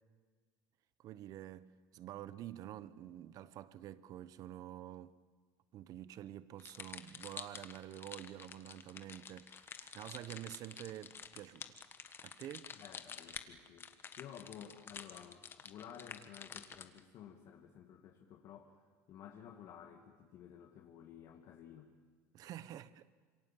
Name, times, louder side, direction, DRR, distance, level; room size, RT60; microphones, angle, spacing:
voice 1, 1.0-5.2 5.7-11.7 12.2-12.7 22.3-23.1, right 12 dB, 55° right, 1.0 m, -48 dB
sound 1, 6.6-17.0, left 6 dB, 30° left, 1.4 m, -49 dB
voice 2, 12.7-13.9 14.2-18.8 19.1-21.9, left 9 dB, 55° left, 2.3 m, -53 dB
27.0 x 23.5 x 7.6 m
supercardioid pair, 110°, 7 cm